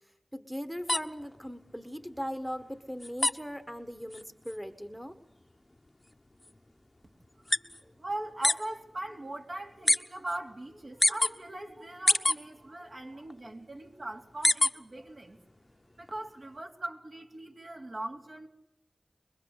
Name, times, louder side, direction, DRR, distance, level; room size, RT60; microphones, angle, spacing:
voice 1, 0.3-5.2, equal, 5° right, 10 dB, 1.5 m, -39 dB
sound 1, 0.8-8.7 9.0-10.0 10.3-11.3 11.8-12.9 13.3-15.0 15.3-16.6, left 1 dB, 30° left, 1.1 m, -29 dB
voice 2, 7.4-15.4 16.0-18.5, right 1 dB, 60° right, 1 dB, 3.8 m, -40 dB
23.5 x 22.5 x 8.3 m, 0.85 s
wide cardioid pair, 50°, 0 cm